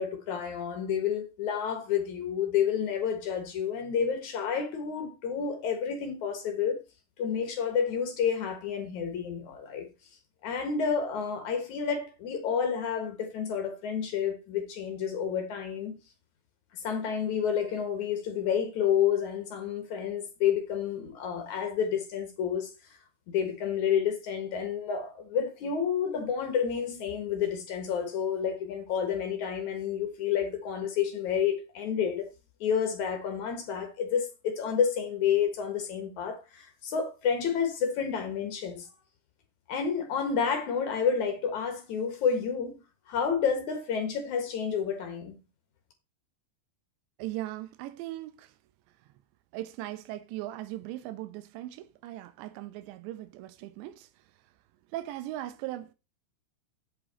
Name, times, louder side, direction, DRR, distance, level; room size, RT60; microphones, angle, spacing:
voice 1, 0.0-6.8 7.2-9.9 10.4-16.0 16.8-22.7 23.3-32.3 32.6-38.9 39.7-42.7 43.1-45.4, left 7 dB, 60° left, 2.2 m, -30 dB
voice 2, 47.2-48.5 49.5-54.1 54.9-55.9, right 15 dB, 85° right, 3.0 m, -39 dB
8.4 x 8.2 x 4.3 m
omnidirectional pair, 5.0 m